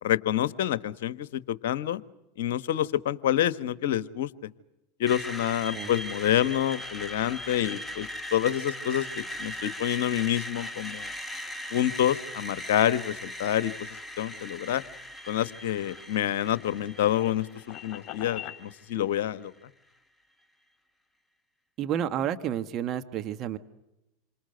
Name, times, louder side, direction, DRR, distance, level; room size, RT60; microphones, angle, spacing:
voice 1, 0.0-2.0 2.4-4.5 5.0-11.1 11.7-13.7 14.2-14.8 15.3-19.5, left 11 dB, 65° left, 14 dB, 1.3 m, -27 dB
Screech, 5.1-19.0, equal, 10° left, 1.9 m, -39 dB
sound 1, 15.9-18.6, left 13 dB, 45° left, 3.6 m, -43 dB
voice 2, 21.8-23.6, right 10 dB, 40° right, 9 dB, 1.6 m, -30 dB
28.0 x 26.5 x 7.9 m, 0.93 s
hypercardioid pair, 90°, 0 cm